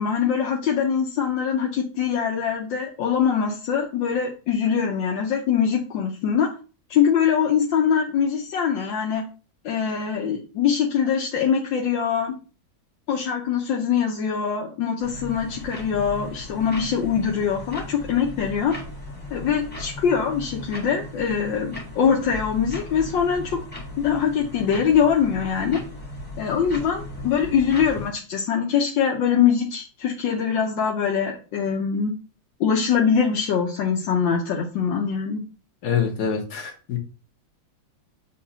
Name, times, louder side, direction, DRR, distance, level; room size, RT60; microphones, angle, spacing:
voice 1, 0.0-6.5 6.9-9.2 9.6-12.3 13.1-18.7 19.3-23.6 24.0-25.8 26.4-32.1 32.6-35.4, left 7 dB, 75° left, 1 dB, 1.5 m, -23 dB
sound 1, 15.0-28.1, left 1 dB, 5° left, 1.5 m, -37 dB
voice 2, 35.8-37.0, left 7 dB, 55° left, 3 dB, 1.7 m, -25 dB
7.0 x 2.8 x 5.5 m, 0.36 s
omnidirectional pair, 2.1 m